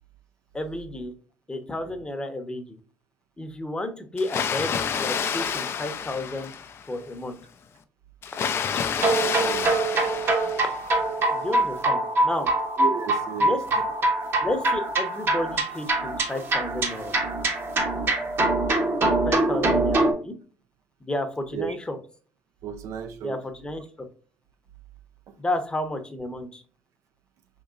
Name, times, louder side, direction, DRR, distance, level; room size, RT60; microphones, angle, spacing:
voice 1, 0.5-1.1 1.5-2.8 3.4-6.5 6.9-7.4 9.7-10.7 11.3-12.5 13.4-13.6 14.4-17.2 19.0-20.3 21.0-22.0 23.2-24.1 25.4-26.6, left 1 dB, 15° left, 0.8 m, -32 dB
Water, 4.2-7.0 8.2-11.0, left 7 dB, 50° left, 0.4 m, -29 dB
sound 1, 9.0-20.1, right 2 dB, 50° right, 0.9 m, -24 dB
voice 2, 9.4-9.8 12.8-13.6 21.5-21.8 22.6-23.4, right 7 dB, 70° right, 0.4 m, -33 dB
3.8 x 2.9 x 2.4 m
supercardioid pair, 70°, 5 cm